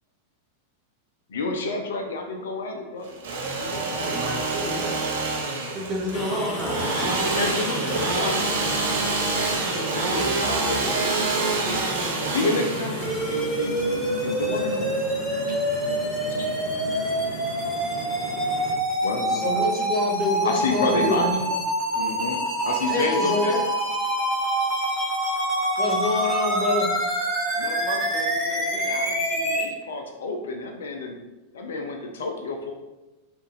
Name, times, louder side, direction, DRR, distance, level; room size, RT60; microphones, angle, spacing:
voice 1, 1.3-3.2 3.6-4.5 7.4-11.8 12.3-15.1 16.2-16.7 19.0-19.7 20.4-21.4 21.9-22.4 22.6-23.6 27.5-31.2 31.5-32.7, left 3 dB, 65° left, 3 dB, 0.4 m, -31 dB
Engine / Sawing, 3.0-14.7, right 3 dB, 55° right, 0.7 m, -27 dB
voice 2, 3.7-4.9 5.7-7.1, equal, 25° right, -1 dB, 0.8 m, -31 dB
sound 1, 6.1-18.7, left 1 dB, 40° left, 1.2 m, -33 dB
voice 3, 6.6-7.2 19.3-21.4 22.9-23.6 25.8-26.9, left 2 dB, 15° left, -3 dB, 0.9 m, -26 dB
sound 2, 13.0-29.6, right 1 dB, 5° right, 1.5 m, -26 dB
4.4 x 2.5 x 3.1 m, 1.1 s
figure-of-eight pair, 90°, 0 cm